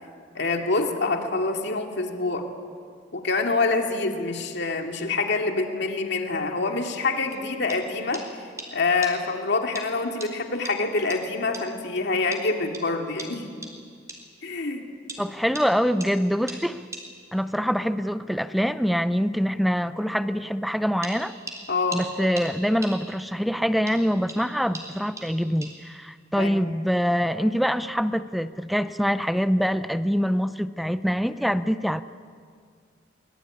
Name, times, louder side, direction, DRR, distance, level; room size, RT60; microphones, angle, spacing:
voice 1, 0.3-2.5 3.1-8.2 8.7-13.5 14.4-14.9 21.7-22.0 26.4-26.6, left 3 dB, 65° left, 3 dB, 2.4 m, -26 dB
sound 1, 7.3-7.4 7.7-7.8 8.1-8.3 8.6-8.7 9.0-9.2 9.8-9.9 10.2-10.3 10.7-10.8 11.1-11.2 11.5-11.7 12.3-12.4 12.7-12.8 13.2-13.3 13.6-13.7 14.1-14.2 15.1-15.2 15.6-15.7 16.0-16.1 16.5-16.6 16.9-17.1 21.0-23.4 23.9-26.0, right 2 dB, 15° right, 3.9 m, -39 dB
voice 2, 15.2-16.8 17.3-21.3 21.9-32.0, equal, ahead, 12 dB, 0.6 m, -24 dB
24.0 x 21.0 x 9.8 m, 2.1 s
head